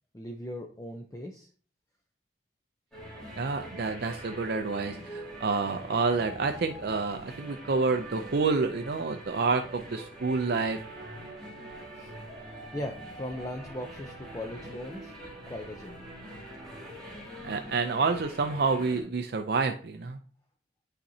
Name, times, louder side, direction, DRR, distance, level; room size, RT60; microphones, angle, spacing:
voice 1, 0.1-1.5 11.6-12.1 12.7-15.1 15.5-16.1, left 1 dB, 20° left, 3 dB, 0.5 m, -39 dB
sound 1, 2.9-19.0, right 1 dB, 5° left, 2.1 m, -44 dB
voice 2, 3.4-10.8 17.4-20.2, right 4 dB, 60° right, 6 dB, 0.4 m, -28 dB
9.0 x 4.2 x 2.7 m, 0.42 s
head